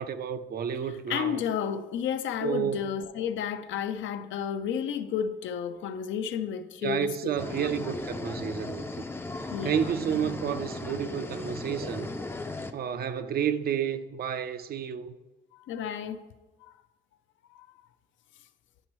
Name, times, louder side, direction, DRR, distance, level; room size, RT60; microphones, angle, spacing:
voice 1, 0.0-1.4 2.4-2.9 6.8-9.0 9.4-12.1 12.7-15.1, right 8 dB, 50° right, 0.4 m, -31 dB
voice 2, 1.1-7.3 7.6-7.7 9.5-10.0 15.5-16.2 16.6-16.7 17.5-17.7, left 8 dB, 70° left, 0.4 m, -32 dB
sound 1, 7.4-12.7, left 2 dB, 10° left, 0.4 m, -36 dB
9.9 x 5.2 x 3.0 m
cardioid pair, 90°, 20 cm